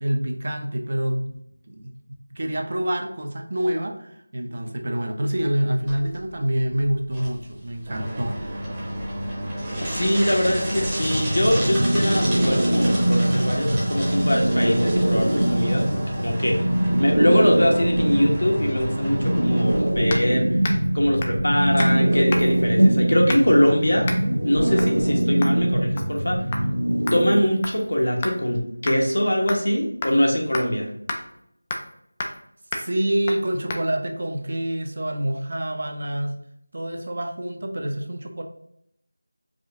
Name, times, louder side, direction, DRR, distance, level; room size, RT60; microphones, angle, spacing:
voice 1, 0.0-1.3 1.7-1.9 2.3-8.3 32.7-36.4 36.7-38.4, right 1 dB, 50° right, 4 dB, 0.6 m, -26 dB
sound 1, 5.9-22.9, right 1 dB, 15° right, 0.8 m, -31 dB
voice 2, 9.7-16.7 17.0-20.6 20.9-24.1 24.4-26.4 27.1-30.9, equal, 75° left, 0 dB, 1.3 m, -22 dB
sound 2, 11.0-27.4, right 1 dB, 85° right, 0.7 m, -22 dB
sound 3, 20.1-20.3 20.6-20.9 21.2-21.4 21.8-22.0 22.3-22.6 23.3-23.6 24.0-24.2 24.8-25.0 25.4-25.6 26.0-26.2 26.5-26.6 27.1-28.4 28.9-29.0 29.5-29.7 30.0-30.2 30.5-30.7 31.1-31.2 31.7-31.9 32.2-32.4 32.7-32.9 33.3-33.4 33.7-33.8, left 2 dB, 20° left, 0.4 m, -31 dB
4.9 x 2.6 x 3.5 m, 0.74 s
figure-of-eight pair, 170°, 0 cm